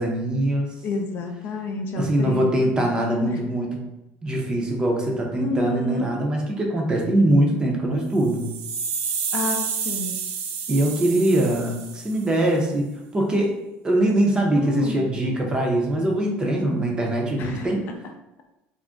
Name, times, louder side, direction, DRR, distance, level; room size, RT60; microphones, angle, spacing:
voice 1, 0.0-0.7 2.0-3.8 4.2-8.5 10.7-12.9 13.1-13.5 13.8-17.8, right 1 dB, 20° right, 0 dB, 0.6 m, -22 dB
voice 2, 0.8-2.9 3.2-3.4 5.4-6.2 9.3-10.2 14.5-15.1 17.4-17.7, left 3 dB, 50° left, 3 dB, 0.4 m, -29 dB
sound 1, 8.2-12.4, right 6 dB, 80° right, 0.3 m, -30 dB
2.5 x 2.1 x 3.5 m, 0.92 s
cardioid pair, 130°, 4 cm